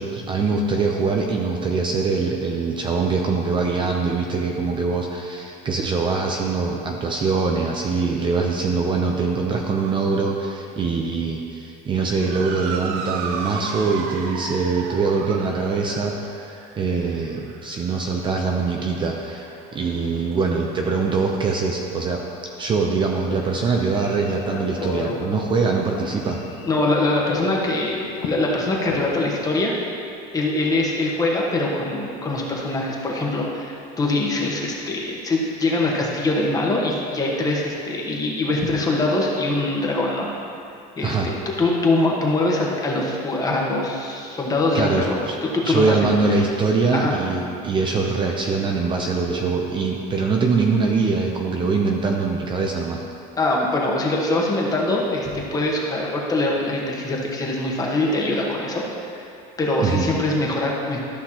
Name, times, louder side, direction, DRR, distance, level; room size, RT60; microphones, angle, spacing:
voice 1, 0.0-22.2 22.6-26.4 41.0-41.3 44.7-45.4 45.6-53.0 59.8-60.1, right 4 dB, 25° right, 0 dB, 0.6 m, -23 dB
Motor vehicle (road) / Siren, 12.0-20.6, right 6 dB, 85° right, 0.7 m, -35 dB
Telephone, 23.3-29.3, left 4 dB, 75° left, 1.0 m, -34 dB
voice 2, 26.6-29.7 30.3-40.3 41.0-45.9 46.3-46.4 46.9-47.1 53.4-59.3 59.6-61.0, left 2 dB, 20° left, -3 dB, 1.2 m, -23 dB
13.0 x 5.7 x 2.9 m, 2.6 s
cardioid pair, 140°, 19 cm